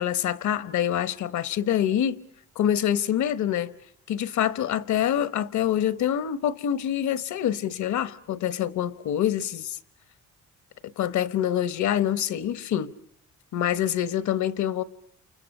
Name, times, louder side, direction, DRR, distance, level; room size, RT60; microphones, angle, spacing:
voice 1, 0.0-2.2 2.6-3.7 4.1-9.8 11.0-12.9 13.5-14.8, left 10 dB, 70° left, 1.1 m, -26 dB
29.0 x 28.5 x 6.6 m
cardioid pair, 90°, 30 cm